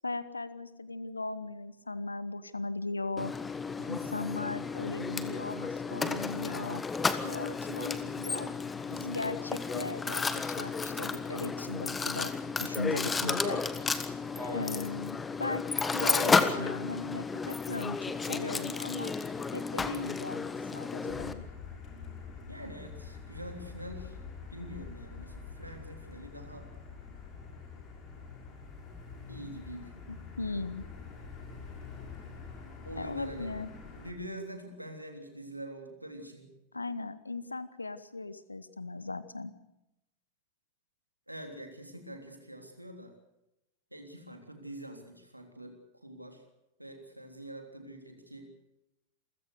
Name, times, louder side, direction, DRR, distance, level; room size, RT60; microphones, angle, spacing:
voice 1, 0.0-3.3 3.9-6.8 7.2-8.5 8.9-12.3 12.6-13.6 14.5-15.6 15.9-19.1 19.5-21.4 30.1-30.8 33.0-33.7 36.7-39.5, left 3 dB, 80° left, 16 dB, 1.1 m, -38 dB
Mechanisms, 3.2-21.3, left 4 dB, 15° left, 1.4 m, -33 dB
voice 2, 3.8-4.2 14.4-14.6 22.5-24.2 24.5-26.7 29.3-30.0 32.9-33.5 34.0-36.5 41.3-43.1 43.9-46.4 46.8-48.5, right 1 dB, 85° right, 4 dB, 3.4 m, -45 dB
Motor vehicle (road), 21.1-34.1, left 5 dB, 30° left, 6.0 m, -46 dB
28.0 x 16.0 x 6.7 m, 0.89 s
figure-of-eight pair, 90°, 0 cm